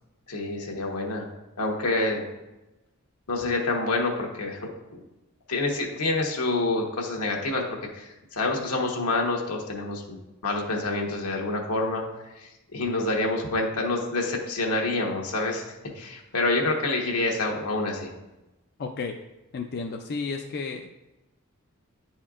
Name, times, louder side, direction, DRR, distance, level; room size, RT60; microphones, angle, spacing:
voice 1, 0.3-1.3 1.6-2.2 3.3-5.0 5.5-7.6 7.9-12.0 12.3-18.1, left 2 dB, 85° left, 0 dB, 1.1 m, -27 dB
voice 2, 18.8-19.1 19.5-20.9, left 4 dB, 45° left, 3 dB, 0.4 m, -32 dB
9.5 x 4.3 x 2.4 m, 1.0 s
head